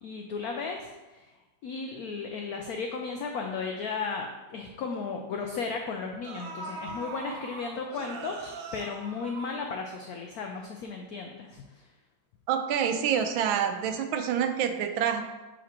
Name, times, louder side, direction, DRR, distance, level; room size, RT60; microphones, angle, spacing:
voice 1, 0.0-1.3 1.6-11.8, left 4 dB, 85° left, 3 dB, 0.8 m, -35 dB
sound 1, 4.1-4.2 4.5-4.7 5.7-5.8 6.2-10.2 10.5-10.6, right 3 dB, 65° right, 0.8 m, -41 dB
voice 2, 12.5-15.2, right 8 dB, 80° right, 7 dB, 1.3 m, -27 dB
6.7 x 5.1 x 2.9 m, 1.1 s
omnidirectional pair, 2.1 m